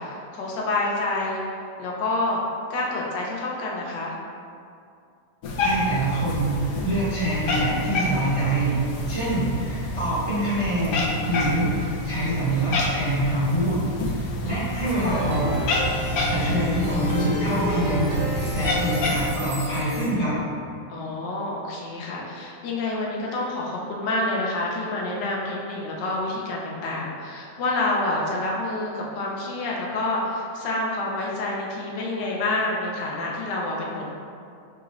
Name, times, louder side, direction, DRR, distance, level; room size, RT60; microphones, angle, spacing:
voice 1, 0.0-1.4 1.8-2.4 2.7-4.2 9.1-9.4 14.8-15.3 20.9-34.1, left 2 dB, 90° left, -3 dB, 1.4 m, -28 dB
Cat, 5.4-19.3, left 1 dB, 65° left, 0.9 m, -29 dB
voice 2, 5.6-8.8 9.0-13.8 14.1-15.9 16.3-20.4, right 1 dB, 20° right, -12 dB, 1.1 m, -25 dB
Plucked string instrument, 15.1-20.4, equal, 75° right, 1.6 m, -30 dB
6.1 x 2.3 x 3.0 m, 2.3 s
omnidirectional pair, 1.8 m